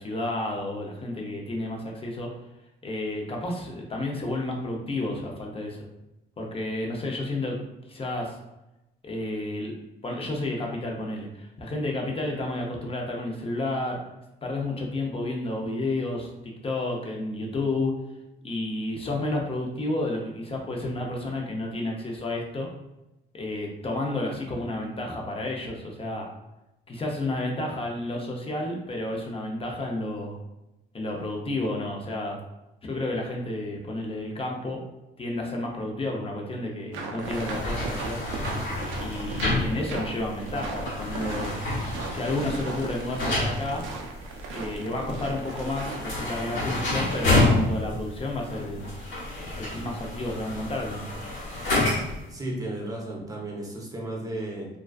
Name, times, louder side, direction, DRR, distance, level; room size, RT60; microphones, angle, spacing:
voice 1, 0.0-2.3 2.8-5.8 6.4-7.6 7.9-8.4 9.0-14.0 14.4-16.3 16.6-17.9 18.4-22.7 23.3-26.3 26.9-30.4 30.9-32.4 32.8-34.8 35.2-38.2 39.0-41.6 42.1-43.8 44.5-48.9 49.6-51.1, left 2 dB, 30° left, 0 dB, 0.6 m, -31 dB
sound 1, 36.9-46.2, right 4 dB, 80° right, 0.4 m, -37 dB
sound 2, 37.2-52.3, left 2 dB, 70° left, 1.1 m, -29 dB
voice 2, 46.6-47.0 52.3-54.7, right 1 dB, 15° right, -2 dB, 0.7 m, -34 dB
2.3 x 2.3 x 2.3 m, 0.93 s
cardioid pair, 90°, 20 cm